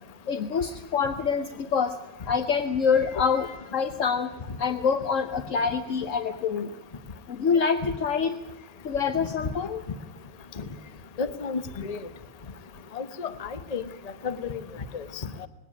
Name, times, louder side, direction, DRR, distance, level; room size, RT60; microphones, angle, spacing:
voice 1, 0.3-1.9 2.3-4.3 4.6-6.7 7.3-8.3 8.8-9.8, left 6 dB, 50° left, 8 dB, 1.0 m, -26 dB
voice 2, 11.2-12.0 12.9-13.8 14.2-14.6 14.9-15.5, left 5 dB, 30° left, 11 dB, 0.8 m, -32 dB
20.5 x 17.0 x 8.8 m, 0.95 s
omnidirectional pair, 2.3 m